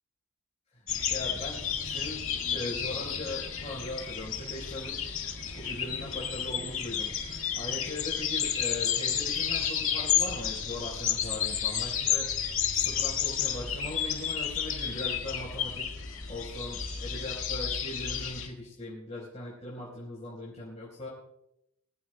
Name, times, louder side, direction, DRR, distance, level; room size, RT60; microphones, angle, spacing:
sound 1, 0.9-18.5, left 8 dB, 70° left, 2.0 m, -31 dB
voice 1, 1.1-2.2 2.5-5.0 5.5-15.9 16.3-21.1, left 1 dB, 30° left, -5 dB, 4.2 m, -40 dB
23.0 x 15.5 x 2.2 m, 0.79 s
head